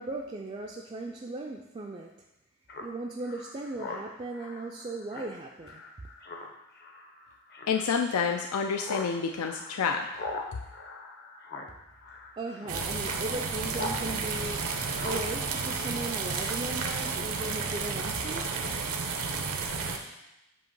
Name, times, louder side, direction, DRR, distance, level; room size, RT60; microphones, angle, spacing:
voice 1, 0.0-2.1 2.8-5.8 12.4-18.5, right 2 dB, 25° right, -1 dB, 0.4 m, -37 dB
Speech synthesizer, 2.7-14.0 14.3-16.5, left 3 dB, 45° left, 0.7 m, -42 dB
voice 2, 7.7-10.3, left 5 dB, 80° left, 4 dB, 0.4 m, -29 dB
sound 1, 12.7-20.0, right 4 dB, 75° right, 0.7 m, -32 dB
7.6 x 2.9 x 5.3 m, 0.91 s
head